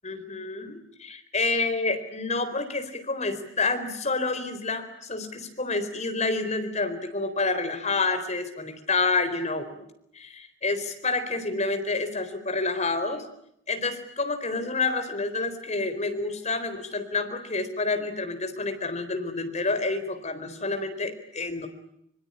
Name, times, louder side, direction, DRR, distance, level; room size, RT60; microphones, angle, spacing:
voice 1, 0.0-9.8 10.1-13.2 13.7-21.7, left 3 dB, 35° left, 8 dB, 4.1 m, -28 dB
25.0 x 23.5 x 9.9 m, 0.75 s
head